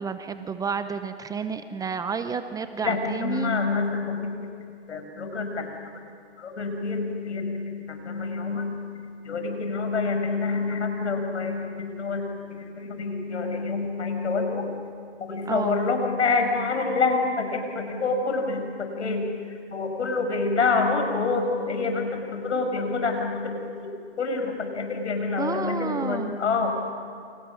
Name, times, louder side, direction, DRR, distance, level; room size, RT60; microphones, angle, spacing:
voice 1, 0.0-3.5 15.5-15.8 25.4-26.4, right 6 dB, 10° right, 10 dB, 0.7 m, -31 dB
voice 2, 2.8-4.3 4.9-5.7 6.4-8.9 9.2-14.7 15.2-19.2 19.7-23.9 24.2-26.7, left 4 dB, 80° left, 4 dB, 6.3 m, -27 dB
29.0 x 27.0 x 6.4 m, 2.3 s
hypercardioid pair, 130°, 34 cm